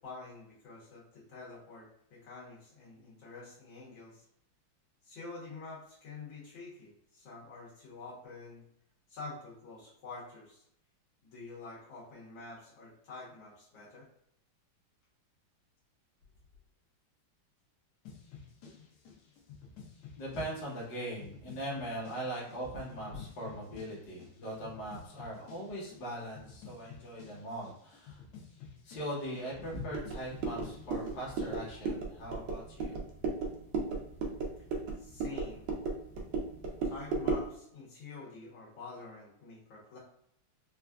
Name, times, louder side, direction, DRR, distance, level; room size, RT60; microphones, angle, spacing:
voice 1, 0.0-4.2 5.0-8.6 9.1-10.6 11.2-14.1 35.0-35.7 36.8-40.0, left 3 dB, 70° left, -7 dB, 1.8 m, -47 dB
sound 1, 18.0-31.8, left 6 dB, 90° left, 1.6 m, -53 dB
voice 2, 20.2-28.2 28.8-33.0, right 1 dB, 55° left, -5 dB, 1.6 m, -40 dB
sound 2, 29.9-37.5, right 4 dB, 70° right, 1.3 m, -35 dB
4.4 x 2.3 x 2.3 m, 0.72 s
omnidirectional pair, 2.3 m